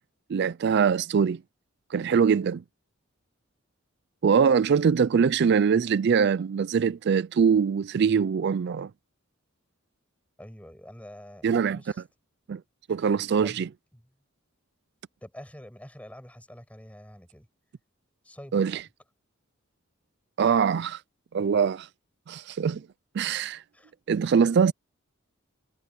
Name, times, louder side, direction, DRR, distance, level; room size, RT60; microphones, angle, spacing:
voice 1, 0.3-1.4 1.9-2.6 4.2-8.9 11.4-11.8 12.5-12.6 12.9-13.7 18.5-18.8 20.4-21.0 21.3-21.9 22.3-22.9 23.1-23.6 24.1-24.7, right 6 dB, 55° right, 0.4 m, -23 dB
voice 2, 10.4-12.0 13.4-14.0 15.2-17.5 18.2-18.8 23.7-23.9, equal, 5° left, 6.0 m, -46 dB
head